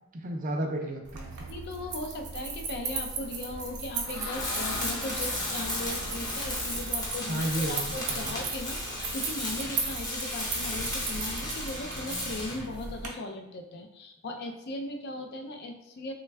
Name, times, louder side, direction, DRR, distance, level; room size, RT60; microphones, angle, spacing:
voice 1, 0.1-1.5 7.3-7.8 8.1-8.3, right 1 dB, 35° right, 3 dB, 0.4 m, -32 dB
sound 1, 1.0-13.1, right 4 dB, 80° right, 0.6 m, -37 dB
voice 2, 1.5-16.1, left 2 dB, 45° left, 4 dB, 0.4 m, -38 dB
sound 2, 3.4-8.1, left 2 dB, 85° left, 0.6 m, -42 dB
Tools, 4.3-12.7, left 1 dB, 20° left, 0.8 m, -34 dB
3.3 x 2.2 x 3.2 m, 0.89 s
head